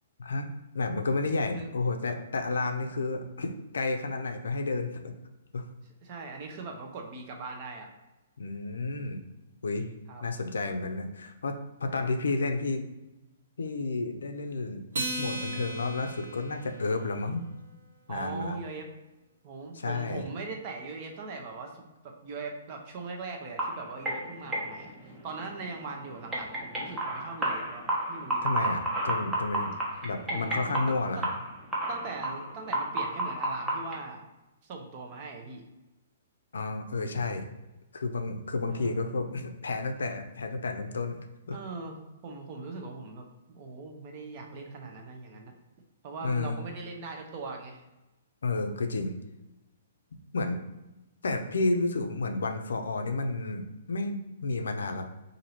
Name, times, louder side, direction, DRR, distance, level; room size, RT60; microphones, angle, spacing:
voice 1, 0.7-5.1 5.5-5.7 8.4-9.2 9.6-9.9 10.2-12.8 13.6-14.8 15.2-17.4 18.1-18.6 19.7-20.2 28.4-29.7 30.0-31.3 36.5-37.5 37.9-41.2 41.5-41.6 46.2-46.6 48.4-49.1 50.3-50.6 51.2-55.1, left 3 dB, 80° left, 5 dB, 0.4 m, -31 dB
voice 2, 6.0-7.9 10.1-10.2 11.9-12.1 18.1-18.9 19.4-28.4 30.3-31.2 31.9-34.2 34.6-35.6 38.7-39.0 41.5-42.0 42.2-45.5 46.0-47.8, right 3 dB, 40° right, 2 dB, 0.7 m, -40 dB
Acoustic guitar, 14.9-17.6, right 1 dB, 75° right, 0.7 m, -36 dB
sound 1, 23.6-34.0, right 1 dB, 10° right, 0.8 m, -33 dB
2.8 x 2.6 x 4.2 m, 1.0 s
hypercardioid pair, 130°, 0 cm